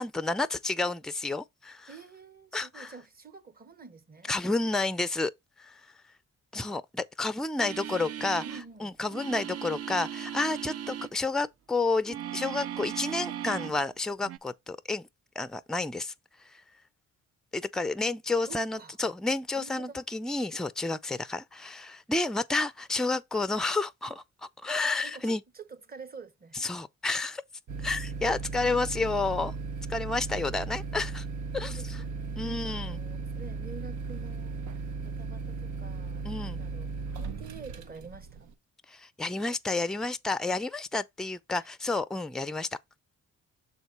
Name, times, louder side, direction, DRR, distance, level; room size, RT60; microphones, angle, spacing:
voice 1, 0.0-1.9 2.5-2.9 4.3-5.3 5.6-5.8 6.5-8.4 8.8-15.1 15.4-16.1 16.5-16.6 17.5-25.4 26.6-27.4 27.8-29.5 29.9-31.3 31.5-31.8 32.4-32.9 36.2-36.6 38.9-42.7, left 3 dB, ahead, 0.5 m, -30 dB
voice 2, 1.9-4.3 7.8-8.9 18.4-19.0 19.6-20.0 25.0-26.8 31.6-38.5 41.5-41.7, right 4 dB, 30° right, 1.1 m, -48 dB
sound 1, 7.6-8.7 9.1-11.1 12.1-13.8 14.2-14.4, right 10 dB, 55° right, 0.5 m, -37 dB
sound 2, 27.7-38.5, right 4 dB, 75° right, 1.0 m, -36 dB
6.5 x 4.0 x 4.6 m
cardioid pair, 90°, 30 cm